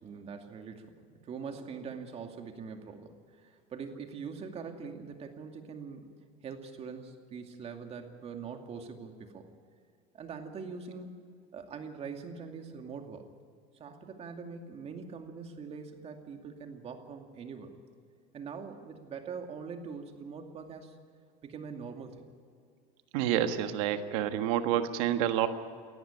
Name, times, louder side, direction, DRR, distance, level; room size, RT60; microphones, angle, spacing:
voice 1, 0.0-6.1 6.4-9.5 10.1-11.2 11.5-13.3 13.8-17.7 18.3-21.0 21.4-22.2, right 5 dB, 40° right, 5 dB, 2.5 m, -43 dB
voice 2, 23.1-25.5, right 11 dB, 80° right, 8 dB, 1.6 m, -28 dB
19.5 x 14.0 x 9.9 m, 2.2 s
supercardioid pair, 120°, 17 cm